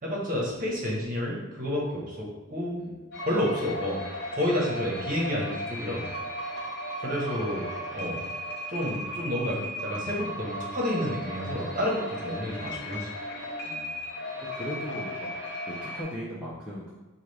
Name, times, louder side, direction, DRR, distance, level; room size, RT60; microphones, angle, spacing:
voice 1, 0.0-2.9 3.2-4.0 4.3-6.1 7.0-8.2 8.7-13.1, left 1 dB, 35° right, -3 dB, 0.9 m, -30 dB
voice 2, 2.8-3.3 13.6-14.0 14.4-15.3 15.7-16.9, equal, 5° right, -8 dB, 0.5 m, -38 dB
sound 1, 3.1-16.0, equal, 50° left, 0.8 m, -36 dB
5.7 x 2.3 x 3.3 m, 1.1 s
head